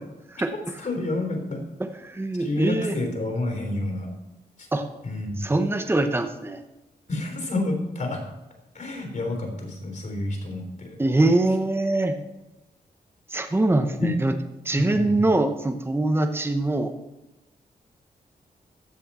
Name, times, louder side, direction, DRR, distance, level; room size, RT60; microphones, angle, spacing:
voice 1, 0.8-1.6 2.4-4.1 4.6-4.7 5.0-5.5 7.1-8.2 8.7-11.0 14.0-14.1 14.8-15.2, left 2 dB, 55° left, 2 dB, 3.6 m, -29 dB
voice 2, 1.8-3.0 4.7-4.9 5.4-6.6 11.0-12.2 13.3-14.3 14.6-16.9, right 2 dB, 15° right, 7 dB, 0.9 m, -23 dB
14.5 x 6.4 x 4.3 m, 0.98 s
cardioid pair, 85°, 16 cm